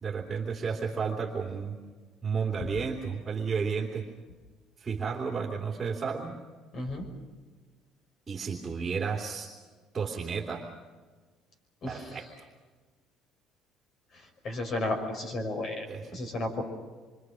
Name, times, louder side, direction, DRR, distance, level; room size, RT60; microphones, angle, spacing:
voice 1, 0.0-1.7 2.2-4.0 4.8-6.4 8.3-9.5 9.9-10.6 11.9-12.4 15.9-16.2, right 5 dB, 15° right, 0 dB, 2.9 m, -32 dB
voice 2, 6.7-7.1 11.8-12.0 14.4-15.8 16.1-16.6, left 2 dB, 35° left, 5 dB, 5.9 m, -32 dB
27.5 x 25.0 x 6.3 m, 1.4 s
cardioid pair, 175°, 0 cm